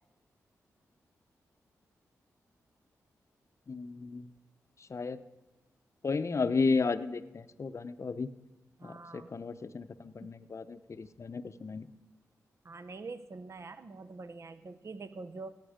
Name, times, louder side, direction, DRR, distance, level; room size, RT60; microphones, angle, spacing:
voice 1, 3.7-4.3 4.9-5.2 6.0-8.3 8.8-11.9, left 4 dB, 50° left, 12 dB, 0.7 m, -33 dB
voice 2, 8.8-9.3 10.2-10.3 12.6-15.5, right 3 dB, 45° right, 12 dB, 0.8 m, -45 dB
16.0 x 8.9 x 5.1 m, 1.1 s
supercardioid pair, 40°, 7 cm